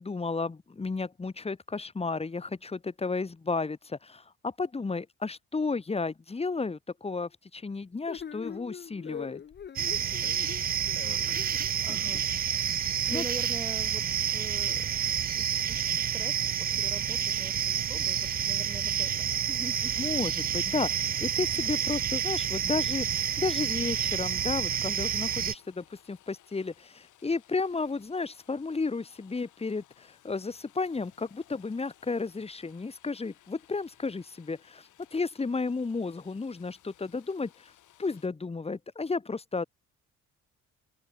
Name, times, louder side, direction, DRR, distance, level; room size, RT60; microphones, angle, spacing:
voice 1, 0.0-9.4 13.1-13.2 20.0-23.1 23.4-37.7 38.0-39.6, left 4 dB, 20° left, 1.3 m, -33 dB
sound 1, 8.1-12.2, left 8 dB, 35° left, 0.7 m, -42 dB
sound 2, 9.8-25.5, right 9 dB, 30° right, 0.4 m, -29 dB
voice 2, 11.0-11.4 11.8-12.2 13.1-14.8 15.3-20.0, right 2 dB, 10° right, 1.1 m, -44 dB
sound 3, 23.7-38.3, left 13 dB, 80° left, 4.0 m, -61 dB
open air
cardioid pair, 90°, 30 cm